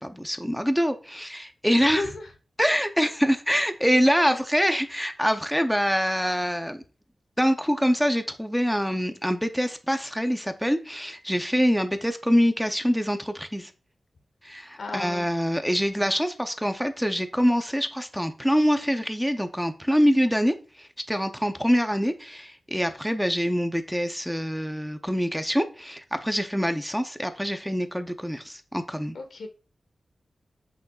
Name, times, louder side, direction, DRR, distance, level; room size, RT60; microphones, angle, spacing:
voice 1, 0.0-2.0 2.6-6.8 7.4-13.7 14.4-29.2, equal, ahead, 0.7 m, -25 dB
voice 2, 1.8-2.3 4.2-4.4 14.8-15.3 29.1-29.5, left 3 dB, 75° left, 1.4 m, -34 dB
8.2 x 6.7 x 2.4 m
wide cardioid pair, 115°, 0 cm